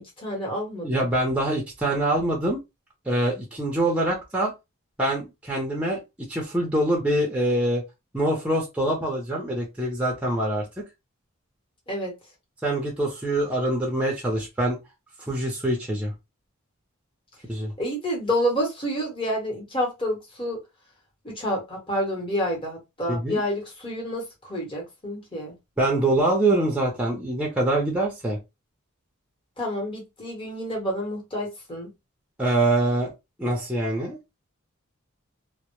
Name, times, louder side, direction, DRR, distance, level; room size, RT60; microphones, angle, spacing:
voice 1, 0.0-1.1 11.9-12.1 17.8-20.6 21.2-25.5 29.6-31.9, equal, 25° left, 0.9 m, -29 dB
voice 2, 0.8-2.6 3.1-4.5 5.0-6.0 6.3-7.8 8.1-10.7 12.6-14.8 15.3-16.1 17.5-17.7 23.1-23.4 25.8-28.4 32.4-33.1 33.4-34.2, right 1 dB, 5° right, 0.5 m, -24 dB
2.1 x 2.0 x 2.9 m
head